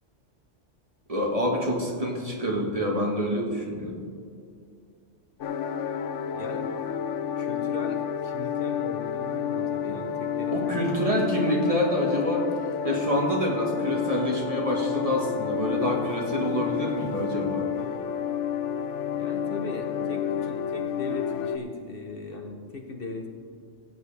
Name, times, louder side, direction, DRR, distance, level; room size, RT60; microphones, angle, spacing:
voice 1, 1.1-4.0 10.5-12.5 12.8-17.7, equal, 30° right, -1 dB, 1.6 m, -27 dB
sound 1, 5.4-21.6, left 8 dB, 75° left, 1.0 m, -30 dB
voice 2, 6.3-6.8 7.4-10.9 19.2-23.3, left 2 dB, 50° left, 3 dB, 1.0 m, -38 dB
Wind instrument woodwind instrument, 13.5-20.8, right 3 dB, 90° right, 1.8 m, -42 dB
16.5 x 9.2 x 3.4 m, 2.2 s
omnidirectional pair, 1.2 m